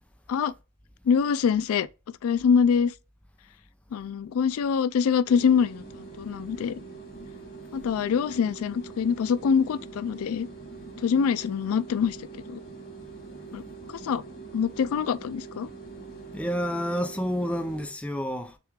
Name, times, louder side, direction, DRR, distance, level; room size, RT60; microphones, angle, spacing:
voice 1, 1.1-1.9 2.2-2.9 3.9-6.7 7.7-10.5 11.0-12.6 13.5-13.6 14.0-14.2 14.5-15.7, left 6 dB, 85° left, 0.3 m, -24 dB
sound 1, 5.3-17.9, right 4 dB, 45° left, 2.4 m, -43 dB
voice 2, 16.3-18.5, equal, 5° left, 0.4 m, -29 dB
6.8 x 2.4 x 3.1 m
head